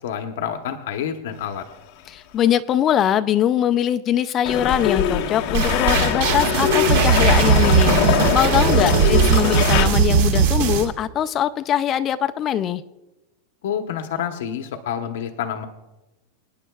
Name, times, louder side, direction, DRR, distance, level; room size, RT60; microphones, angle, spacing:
voice 1, 0.0-1.6 8.7-8.9 13.6-15.7, left 8 dB, 70° left, 6 dB, 0.9 m, -28 dB
voice 2, 2.1-12.8, left 10 dB, 25° left, 12 dB, 0.3 m, -22 dB
sound 1, 4.5-9.9, left 9 dB, 45° left, 1.3 m, -22 dB
sound 2, 5.5-10.8, right 6 dB, 60° right, 2.1 m, -18 dB
25.5 x 9.9 x 2.3 m, 1.0 s
supercardioid pair, 165°, 0 cm